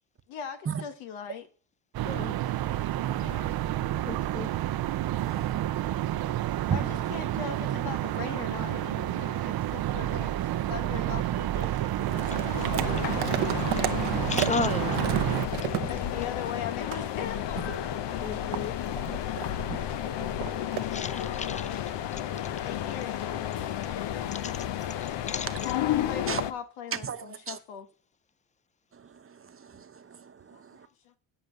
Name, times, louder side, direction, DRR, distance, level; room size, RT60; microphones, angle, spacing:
voice 1, 0.3-1.5 3.2-3.5 6.7-14.0 15.9-17.6 22.6-23.2 26.1-27.9 30.5-30.6 31.0-31.1, left 7 dB, 80° left, 1.4 m, -40 dB
sound 1, 1.9-15.5, right 13 dB, 50° right, 0.7 m, -30 dB
voice 2, 4.1-4.5 14.3-15.0 18.2-18.7 20.9-21.8 24.3-24.5 25.3-25.5, left 5 dB, 15° left, 0.7 m, -33 dB
voice 3, 5.1-6.9 15.7-15.9 19.7-21.0 26.3-26.4 27.0-27.6 29.0-30.9, right 7 dB, 25° right, 1.0 m, -37 dB
sound 2, 11.5-16.6 16.9-17.1 17.6-19.7 20.2-20.9, right 15 dB, 80° right, 0.9 m, -33 dB
sound 3, 12.0-26.5, left 11 dB, 60° left, 0.9 m, -32 dB
9.5 x 5.3 x 6.8 m
supercardioid pair, 75°, 47 cm